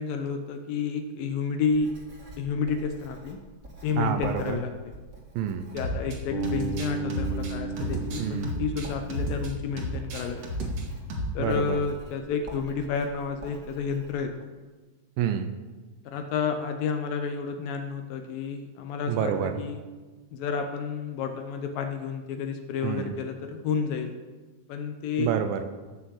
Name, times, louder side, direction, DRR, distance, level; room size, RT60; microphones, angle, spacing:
voice 1, 0.0-1.9 2.4-3.4 3.8-4.7 5.7-10.7 11.3-14.5 16.1-19.8 20.3-24.1 24.7-25.3, left 5 dB, 75° left, 6 dB, 2.1 m, -30 dB
Writing, 1.7-14.1, right 2 dB, 25° right, 1.8 m, -46 dB
voice 2, 4.0-4.6 5.4-5.7 8.2-8.5 11.4-11.8 15.2-15.5 19.1-19.6 22.8-23.2 25.2-25.6, right 9 dB, 80° right, 9 dB, 2.1 m, -28 dB
sound 1, 5.8-6.2 6.4-9.5 9.8-10.8 11.1-11.4, equal, 50° right, 2.2 m, -32 dB
Bass guitar, 6.3-10.3, right 3 dB, 55° left, 2.2 m, -35 dB
15.5 x 6.3 x 7.7 m, 1.3 s
omnidirectional pair, 5.1 m